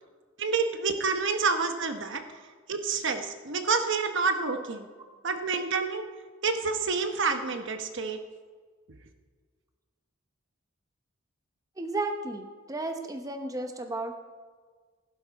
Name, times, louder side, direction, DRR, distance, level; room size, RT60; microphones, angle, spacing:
voice 1, 0.4-2.2 2.7-4.9 5.2-6.0 6.4-8.2, right 4 dB, 60° right, 7 dB, 1.0 m, -28 dB
voice 2, 11.8-14.1, right 2 dB, 15° right, 5 dB, 0.8 m, -33 dB
15.0 x 12.0 x 4.1 m, 1.5 s
head